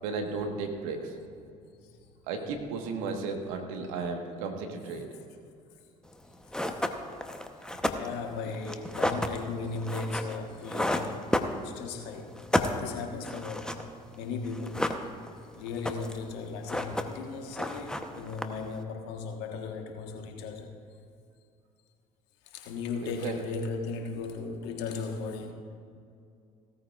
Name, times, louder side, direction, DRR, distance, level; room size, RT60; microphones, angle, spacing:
voice 1, 0.0-1.1 2.3-5.1 23.2-23.3, right 4 dB, 75° right, 3 dB, 1.6 m, -34 dB
sound 1, 6.1-6.2 6.5-12.0 12.3-14.1 14.5-15.4 15.7-16.3 16.5-17.3 17.5-18.8, left 1 dB, 5° left, 1.0 m, -31 dB
voice 2, 8.0-11.4 11.6-12.4 12.8-13.9 14.2-14.9 15.5-20.7 22.4-25.5, left 4 dB, 70° left, 3 dB, 1.5 m, -36 dB
17.0 x 13.5 x 2.5 m, 2.4 s
hypercardioid pair, 65°, 18 cm